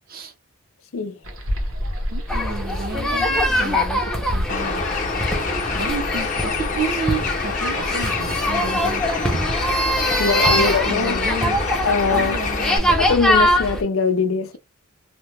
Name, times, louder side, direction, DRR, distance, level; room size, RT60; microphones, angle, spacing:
sound 1, 1.2-7.8, equal, 70° right, 1.0 m, -32 dB
voice 1, 2.1-4.8 5.7-9.5 10.2-12.9, right 3 dB, 45° right, 0.6 m, -31 dB
sound 2, 2.3-13.8, equal, 5° left, 0.6 m, -23 dB
Bird, 4.5-12.8, left 5 dB, 35° left, 0.8 m, -27 dB
voice 2, 10.2-11.2 11.8-12.4 13.0-14.6, left 4 dB, 70° left, 0.5 m, -21 dB
2.8 x 2.1 x 3.2 m
head